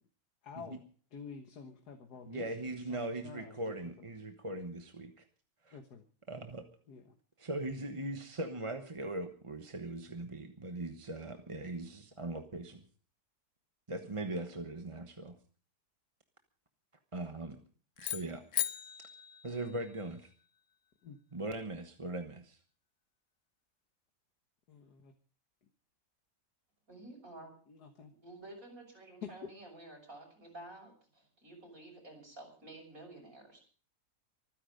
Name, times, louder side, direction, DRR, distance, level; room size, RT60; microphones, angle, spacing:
voice 1, 0.4-0.8 1.1-3.7 5.7-6.0 6.9-7.2 21.0-21.2 24.7-25.1 27.7-28.1 29.2-29.3, left 6 dB, 75° left, 6 dB, 2.0 m, -49 dB
voice 2, 2.3-5.1 5.6-5.8 6.3-6.7 7.4-12.8 13.9-15.4 17.1-17.6 18.0-18.4 19.4-20.3 21.3-22.6, right 2 dB, 20° right, 6 dB, 1.2 m, -40 dB
sound 1, 18.0-20.3, left 10 dB, 55° left, 1.1 m, -38 dB
voice 3, 26.9-27.5 28.1-33.6, right 2 dB, 55° right, 1 dB, 6.9 m, -51 dB
25.0 x 10.0 x 5.1 m, 0.41 s
omnidirectional pair, 1.7 m